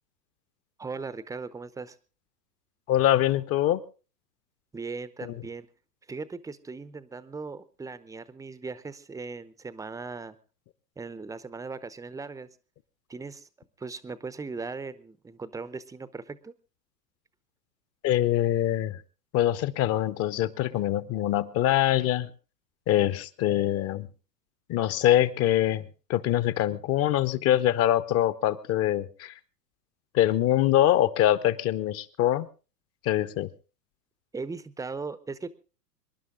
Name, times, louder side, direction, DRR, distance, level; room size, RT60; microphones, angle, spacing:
voice 1, 0.8-2.0 4.7-5.7 6.1-10.4 11.0-12.5 13.1-16.5 34.3-35.5, right 4 dB, 5° right, 15 dB, 0.7 m, -38 dB
voice 2, 2.9-3.8 5.2-5.3 18.0-19.0 19.3-22.3 22.9-24.1 24.7-25.8 26.1-29.3 30.1-32.5 33.0-33.5, left 12 dB, 30° left, 17 dB, 0.9 m, -24 dB
25.5 x 11.0 x 3.8 m, 0.36 s
hypercardioid pair, 100°, 49 cm